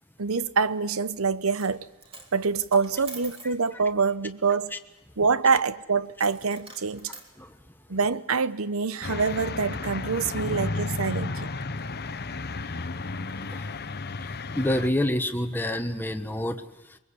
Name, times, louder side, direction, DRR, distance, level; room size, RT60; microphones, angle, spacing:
voice 1, 0.2-1.9 2.3-4.7 5.2-7.1 7.9-11.5, right 5 dB, 70° right, 0.9 m, -25 dB
Coin (dropping), 1.5-1.8 2.0-3.6 6.2-7.3, right 3 dB, 25° right, 3.5 m, -45 dB
sound 1, 9.0-14.9, left 3 dB, 50° left, 1.1 m, -33 dB
voice 2, 14.2-17.0, left 1 dB, 10° left, 1.3 m, -28 dB
23.0 x 23.0 x 8.5 m
head